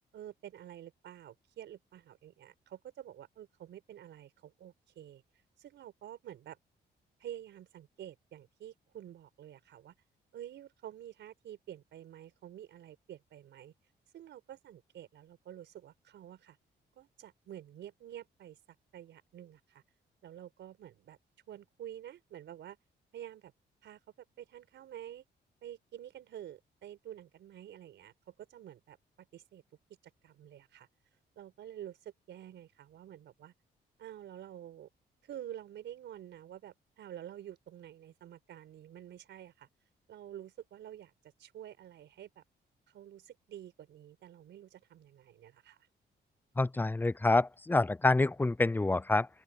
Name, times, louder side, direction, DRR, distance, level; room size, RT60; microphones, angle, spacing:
voice 1, 0.1-5.2 5.6-6.6 7.2-9.9 10.3-13.7 14.1-16.6 16.9-18.6 18.9-19.8 20.2-21.2 21.5-22.8 23.1-23.5 23.8-24.0 24.4-25.2 25.6-29.6 30.2-30.9 31.3-33.5 34.0-34.9 35.2-39.7 40.1-41.1 41.4-42.4 42.9-45.8, right 11 dB, 85° right, 5.1 m, -49 dB
voice 2, 46.6-49.3, left 2 dB, 10° left, 0.4 m, -27 dB
open air
cardioid pair, 90°, 18 cm